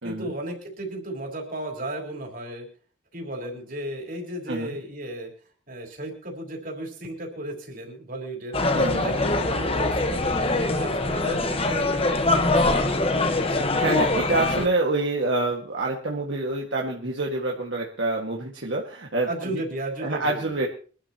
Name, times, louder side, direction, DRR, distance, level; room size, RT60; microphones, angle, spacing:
voice 1, 0.0-2.7 3.1-5.3 5.7-8.6 8.9-13.6 19.3-20.7, right 1 dB, 45° right, 2 dB, 4.1 m, -35 dB
sound 1, 8.5-14.7, left 2 dB, 30° left, 1.2 m, -23 dB
voice 2, 13.8-19.6 20.0-20.7, right 2 dB, 70° right, -1 dB, 1.9 m, -27 dB
24.5 x 12.0 x 2.9 m, 0.40 s
head